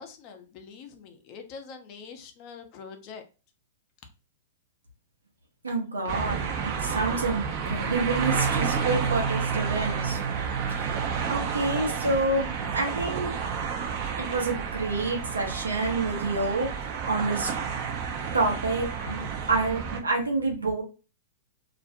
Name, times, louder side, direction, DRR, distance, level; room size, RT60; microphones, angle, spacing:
voice 1, 0.0-3.2, left 5 dB, 45° left, 6 dB, 0.5 m, -44 dB
voice 2, 5.6-10.2 10.7-13.4 14.2-16.7 17.1-17.5 18.3-20.8, right 3 dB, 90° right, 1 dB, 0.8 m, -28 dB
sound 1, 6.1-20.0, right 6 dB, 45° right, 0.5 m, -30 dB
2.4 x 2.0 x 2.6 m, 0.33 s
hypercardioid pair, 110°, 0 cm